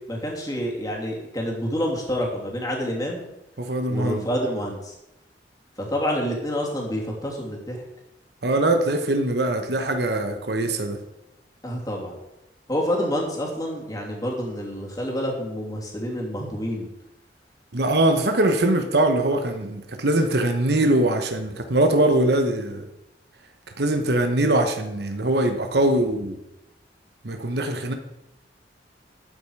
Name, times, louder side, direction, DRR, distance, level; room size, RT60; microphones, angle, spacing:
voice 1, 0.1-3.2 3.9-4.9 5.8-7.8 11.6-12.2 12.7-16.9, equal, 20° left, 2.9 m, -28 dB
voice 2, 3.6-4.3 8.4-11.0 17.7-22.8 23.8-26.4 27.2-27.9, right 1 dB, 65° right, 1.2 m, -22 dB
12.5 x 8.8 x 4.8 m
head